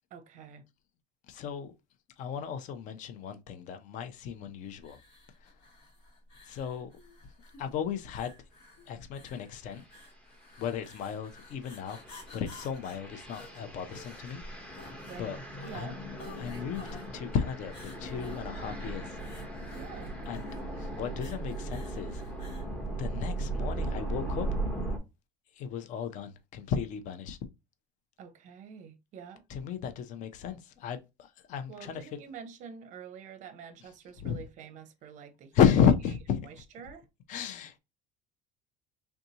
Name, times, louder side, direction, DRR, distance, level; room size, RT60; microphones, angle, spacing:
voice 1, 0.1-0.6 15.0-16.0 19.7-20.2 28.2-29.4 31.7-35.5 36.4-37.1, right 7 dB, 40° right, 0.6 m, -47 dB
voice 2, 1.3-1.7 2.2-5.0 6.5-6.9 7.6-8.3 8.9-9.8 10.6-12.0 12.3-14.4 15.2-15.4 15.7-15.9 16.4-16.9 17.1-17.7 18.0-19.1 20.3-20.5 20.8-22.2 23.0-24.5 25.6-27.4 29.5-31.0 31.5-32.0 34.2-34.4 35.5-36.2 37.3-37.8, left 8 dB, 45° left, 0.5 m, -32 dB
sound 1, 4.8-22.7, left 2 dB, 80° left, 1.8 m, -52 dB
sound 2, 9.7-10.0 10.5-25.0, right 2 dB, 5° left, 0.8 m, -38 dB
3.5 x 2.7 x 2.7 m
cardioid pair, 155°, 19 cm